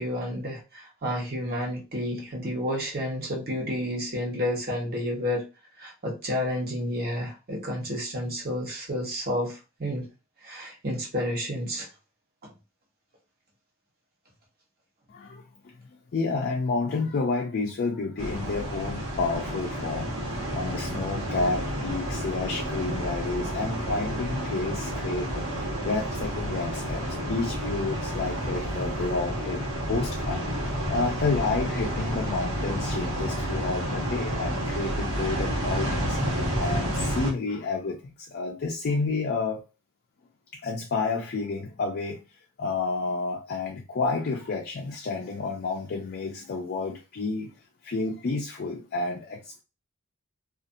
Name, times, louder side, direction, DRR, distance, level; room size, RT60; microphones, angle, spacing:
voice 1, 0.0-5.5 5.8-10.1 10.4-11.9 12.4-12.5, left 1 dB, 45° right, 1.1 m, -30 dB
voice 2, 15.1-15.8 16.1-30.4 30.8-39.6 40.5-42.2 42.6-47.5 47.8-49.6, left 3 dB, 50° left, 0.4 m, -30 dB
sound 1, 18.2-37.3, equal, 70° right, 1.2 m, -30 dB
2.6 x 2.4 x 2.6 m
head